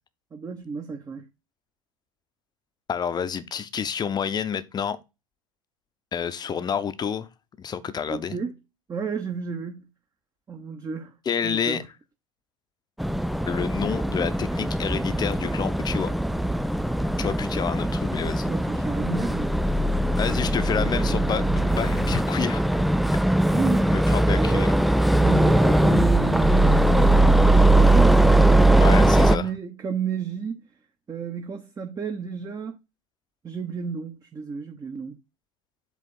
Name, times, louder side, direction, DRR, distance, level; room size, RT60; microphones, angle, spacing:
voice 1, 0.3-1.3 8.1-8.6 8.9-9.9 10.5-11.1 11.4-11.8 18.4-19.6 20.3-20.7 23.5-24.0 24.3-24.7 25.1-30.6 31.1-32.8 33.4-35.2, right 5 dB, 20° right, 0.9 m, -32 dB
voice 2, 2.9-5.0 6.1-7.3 7.6-8.4 11.2-11.8 13.5-16.1 17.2-18.5 20.2-22.6 23.9-24.7 28.8-29.5, left 7 dB, 25° left, 0.9 m, -29 dB
sound 1, 13.0-29.4, right 1 dB, ahead, 0.3 m, -20 dB
8.2 x 3.5 x 4.4 m
figure-of-eight pair, 80°, 18 cm